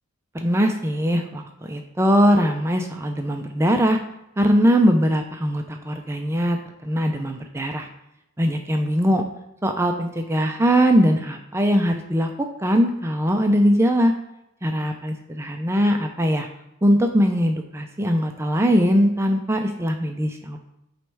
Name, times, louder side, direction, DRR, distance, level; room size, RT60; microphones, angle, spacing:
voice 1, 0.3-1.4 1.7-4.0 4.4-7.9 8.4-9.2 9.6-12.3 12.6-14.1 14.6-16.5 16.8-20.6, equal, 10° right, 4 dB, 0.4 m, -21 dB
7.8 x 3.1 x 4.6 m, 0.85 s
head